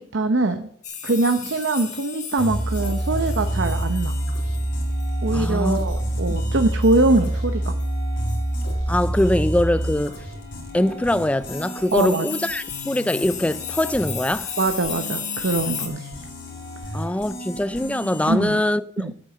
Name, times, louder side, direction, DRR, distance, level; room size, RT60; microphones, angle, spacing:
voice 1, 0.1-0.7 1.0-4.2 5.2-7.7 11.9-12.2 14.6-16.2 18.3-18.6 19.0-19.1, right 2 dB, 65° right, 0.8 m, -22 dB
sound 1, 0.8-7.0 7.3-7.4 7.6-7.9 8.3-8.5 9.2-9.3 11.1-15.9, left 7 dB, 35° left, 1.8 m, -35 dB
sound 2, 2.4-18.4, equal, 65° left, 3.8 m, -35 dB
sound 3, 2.5-9.9, right 1 dB, 30° right, 1.3 m, -25 dB
voice 2, 5.3-5.8 6.3-6.4 8.9-10.2 10.7-14.5 16.9-19.1, left 1 dB, 5° left, 0.4 m, -23 dB
8.4 x 7.7 x 6.6 m
head